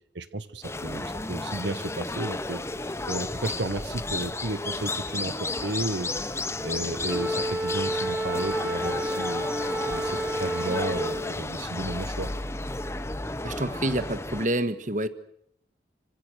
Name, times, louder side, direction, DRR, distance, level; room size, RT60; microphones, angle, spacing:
voice 1, 0.1-2.6 3.1-6.1 6.6-9.5 9.8-12.3, right 2 dB, 75° right, 11 dB, 1.3 m, -33 dB
sound 1, 0.6-14.5, left 2 dB, 15° left, 0.9 m, -33 dB
Wind instrument woodwind instrument, 7.1-11.4, right 1 dB, 5° right, 1.4 m, -30 dB
voice 2, 13.4-15.1, right 1 dB, 45° right, 12 dB, 1.5 m, -27 dB
27.0 x 26.0 x 6.5 m, 0.71 s
head